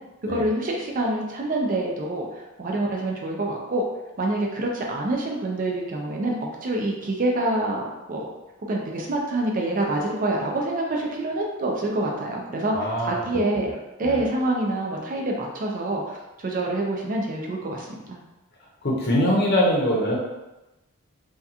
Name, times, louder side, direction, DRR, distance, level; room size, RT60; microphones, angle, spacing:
voice 1, 0.2-2.3 2.6-3.8 4.2-6.4 6.6-8.3 8.7-13.7 14.0-18.2, right 2 dB, 40° right, -1 dB, 0.4 m, -26 dB
voice 2, 12.7-13.2 14.0-14.2 18.8-20.2, equal, 50° left, -4 dB, 0.7 m, -22 dB
2.8 x 2.3 x 2.4 m, 1.0 s
head